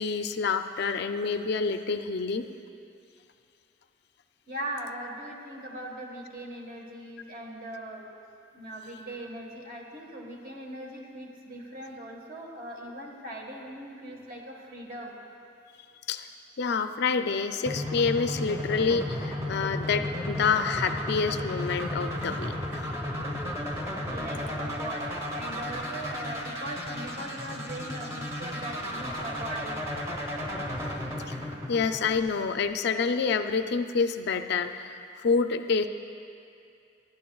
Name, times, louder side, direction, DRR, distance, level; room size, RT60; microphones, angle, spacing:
voice 1, 0.0-2.5 16.1-16.3 16.6-22.8 31.3-31.4 31.7-35.9, left 5 dB, 55° left, 8 dB, 0.4 m, -27 dB
voice 2, 4.5-8.1 8.5-15.1 24.1-25.0 25.3-29.8, right 1 dB, 45° right, 0 dB, 1.4 m, -39 dB
sound 1, 17.7-32.6, left 1 dB, 15° right, 1.0 m, -34 dB
19.5 x 11.5 x 2.3 m, 2.5 s
head